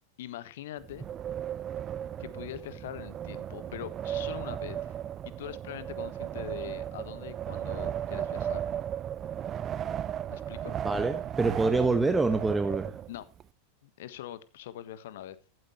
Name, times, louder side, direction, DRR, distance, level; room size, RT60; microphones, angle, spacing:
voice 1, 0.2-1.0 2.2-5.0 5.2-8.7 10.3-10.8 13.1-13.3 13.8-15.4, left 12 dB, 55° left, 15 dB, 1.4 m, -42 dB
Wind, 0.8-13.4, right 10 dB, 25° right, 0.5 m, -36 dB
voice 2, 10.8-12.9, right 3 dB, 10° right, 9 dB, 1.2 m, -26 dB
14.5 x 12.5 x 3.2 m, 0.29 s
figure-of-eight pair, 90°, 0 cm